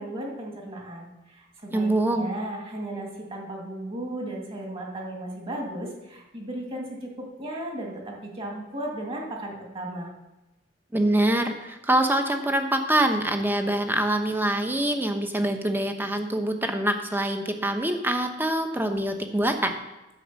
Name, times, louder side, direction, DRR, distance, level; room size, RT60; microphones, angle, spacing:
voice 1, 0.0-10.1, right 1 dB, 30° right, -1 dB, 2.5 m, -35 dB
voice 2, 1.7-2.3 10.9-19.7, right 1 dB, 10° right, 5 dB, 1.0 m, -25 dB
10.5 x 6.3 x 7.6 m, 1.0 s
head